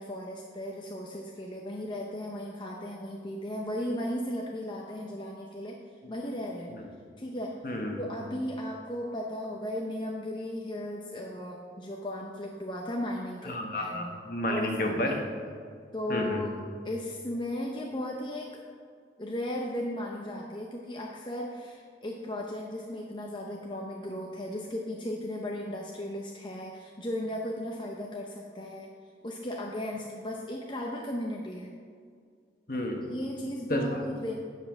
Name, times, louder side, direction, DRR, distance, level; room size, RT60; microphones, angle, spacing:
voice 1, 0.0-5.8 6.1-6.7 7.2-7.6 8.0-14.1 14.5-15.2 15.9-16.5 16.8-18.6 19.2-28.9 29.2-31.7 33.1-34.4, left 1 dB, 25° left, -1 dB, 0.6 m, -36 dB
voice 2, 7.6-8.0 13.4-15.2 16.1-16.4 32.7-33.1 33.7-34.0, left 1 dB, 50° left, 2 dB, 1.3 m, -31 dB
9.5 x 5.5 x 6.0 m, 2.1 s
head